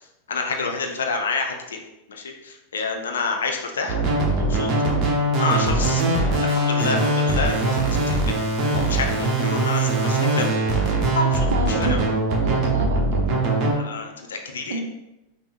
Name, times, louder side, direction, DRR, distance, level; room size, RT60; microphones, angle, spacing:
voice 1, 0.3-1.8 2.1-4.0 4.4-4.7 5.4-10.8 11.1-12.0 13.7-14.8, left 4 dB, 65° left, 3 dB, 0.5 m, -28 dB
sound 1, 3.9-13.7, right 2 dB, 30° right, 0.9 m, -21 dB
voice 2, 11.5-13.4 14.7-14.8, right 3 dB, 60° right, 3 dB, 0.6 m, -29 dB
5.3 x 2.1 x 2.9 m, 0.93 s
figure-of-eight pair, 90°, 0 cm